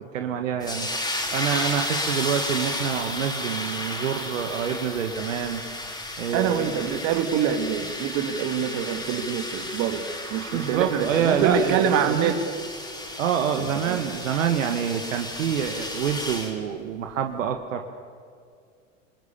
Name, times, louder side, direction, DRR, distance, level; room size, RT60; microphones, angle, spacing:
voice 1, 0.1-0.9 1.3-5.6 6.2-6.6 10.5-12.3 13.2-17.8, right 8 dB, 80° right, 5 dB, 1.7 m, -27 dB
sound 1, 0.6-16.5, left 1 dB, 10° left, 4.3 m, -33 dB
voice 2, 6.3-10.0 10.3-12.4 13.6-14.0, right 8 dB, 50° right, 7 dB, 2.7 m, -25 dB
27.5 x 21.0 x 7.2 m, 2.2 s
hypercardioid pair, 100°, 38 cm